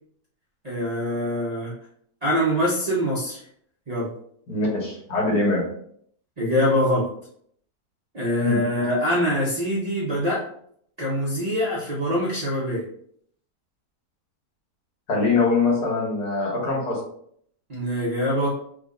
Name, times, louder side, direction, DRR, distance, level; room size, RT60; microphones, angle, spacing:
voice 1, 0.6-1.7 2.2-3.4 3.9-4.1 6.4-7.1 8.1-10.4 11.0-12.8 17.7-18.5, equal, 45° right, -7 dB, 0.5 m, -24 dB
voice 2, 4.5-5.6 8.4-8.6 15.1-17.0, left 3 dB, 85° left, -3 dB, 1.8 m, -23 dB
3.5 x 2.2 x 3.6 m, 0.65 s
omnidirectional pair, 1.7 m